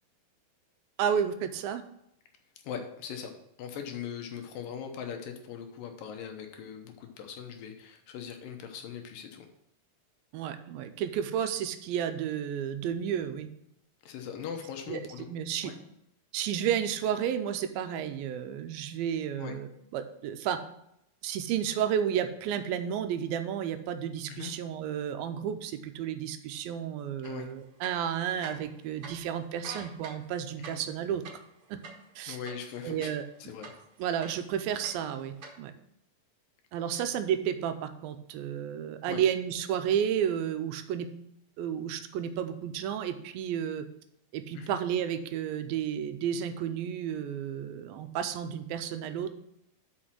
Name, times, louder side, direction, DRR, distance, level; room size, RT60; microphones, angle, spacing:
voice 1, 1.0-1.8 10.3-13.5 14.9-15.0 15.3-15.7 16.3-20.6 21.2-31.2 31.7-31.8 32.2-32.4 32.8-33.3 34.0-35.7 36.7-41.1 41.6-43.8 44.3-49.3, right 9 dB, 90° right, 9 dB, 2.5 m, -32 dB
voice 2, 2.6-3.3 3.6-9.5 14.0-15.3 15.6-15.8 19.4-19.6 24.3-24.5 27.2-27.5 30.6-30.8 32.3-33.1 33.4-33.7 37.0-37.1 39.0-39.2 44.5-44.8, left 7 dB, 75° left, 5 dB, 2.5 m, -40 dB
sound 1, 27.2-27.3 27.7-28.8 29.0-29.1 29.5-33.3 33.6-34.5 34.8-35.5, right 4 dB, 55° right, 1.8 m, -45 dB
6.3 x 5.8 x 6.1 m, 0.78 s
omnidirectional pair, 4.2 m